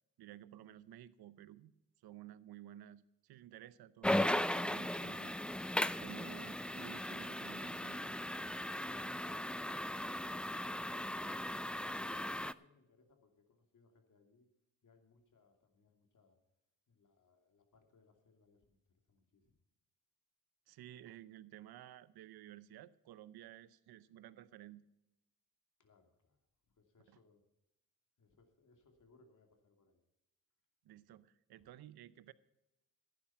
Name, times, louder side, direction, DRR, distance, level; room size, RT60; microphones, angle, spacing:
voice 1, 0.2-1.7 2.0-5.3 5.9-8.0 20.7-24.8 27.1-27.2 30.8-32.3, right 12 dB, 80° right, 17 dB, 0.7 m, -54 dB
sound 1, 4.0-12.5, left 1 dB, 5° left, 0.4 m, -37 dB
voice 2, 4.9-5.4 11.8-14.5 14.8-16.4 16.9-18.8 19.1-19.5 25.8-26.4 26.8-27.4 28.2-30.0, left 3 dB, 55° left, 5 dB, 2.6 m, -68 dB
11.5 x 9.3 x 5.7 m, 0.91 s
supercardioid pair, 50°, 37 cm